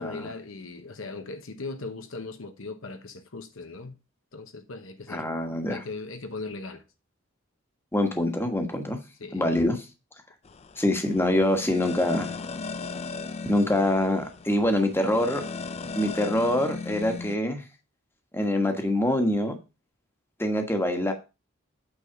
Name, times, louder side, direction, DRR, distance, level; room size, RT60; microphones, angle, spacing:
voice 1, 0.0-4.0 4.3-5.3 5.7-6.8 9.2-9.4, left 3 dB, 65° left, 1.0 m, -38 dB
voice 2, 5.1-5.8 7.9-9.0 9.3-9.8 10.8-12.3 13.4-15.4 16.0-17.6 18.3-19.5 20.4-21.1, left 1 dB, 10° left, 1.3 m, -25 dB
sound 1, 10.4-17.4, left 4 dB, 30° left, 0.4 m, -37 dB
8.8 x 4.0 x 5.8 m
head